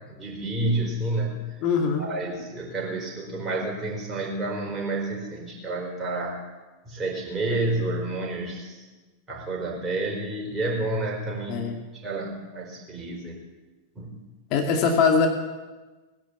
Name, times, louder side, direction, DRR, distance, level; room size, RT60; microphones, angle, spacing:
voice 1, 0.1-1.6 2.0-6.4 6.9-8.8 9.3-11.7 12.0-13.4 13.9-14.1, right 2 dB, 15° right, -1 dB, 4.5 m, -29 dB
voice 2, 1.6-2.1 11.5-11.8 14.5-15.3, left 5 dB, 40° left, 3 dB, 2.3 m, -22 dB
19.0 x 10.0 x 7.1 m, 1.3 s
figure-of-eight pair, 90°, 0 cm